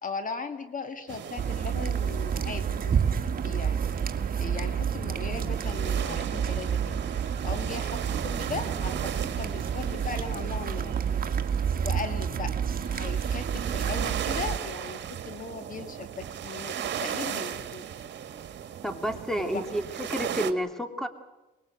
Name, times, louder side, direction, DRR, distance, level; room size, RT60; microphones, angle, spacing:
voice 1, 0.0-3.0 3.3-3.7 4.4-6.9 7.4-10.9 11.8-12.6 12.9-17.8 19.4-19.6, left 4 dB, 45° left, 8 dB, 2.0 m, -38 dB
sound 1, 1.1-20.5, right 9 dB, 65° right, 1.9 m, -37 dB
sound 2, 1.4-14.6, right 7 dB, 45° right, 1.8 m, -29 dB
voice 2, 18.8-21.1, equal, ahead, 7 dB, 2.7 m, -30 dB
24.0 x 21.5 x 8.0 m, 1.0 s
cardioid pair, 90°, 20 cm